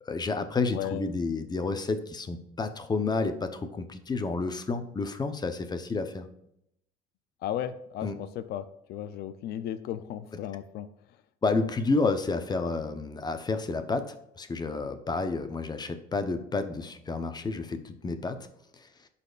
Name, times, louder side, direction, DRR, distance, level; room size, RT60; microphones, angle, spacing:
voice 1, 0.0-6.3 8.0-8.2 11.4-18.5 18.7-18.9, left 3 dB, 25° left, 8 dB, 0.8 m, -30 dB
voice 2, 0.7-1.0 7.4-10.9, left 10 dB, 70° left, 11 dB, 0.5 m, -35 dB
12.0 x 4.2 x 2.5 m, 0.76 s
cardioid pair, 110°, 17 cm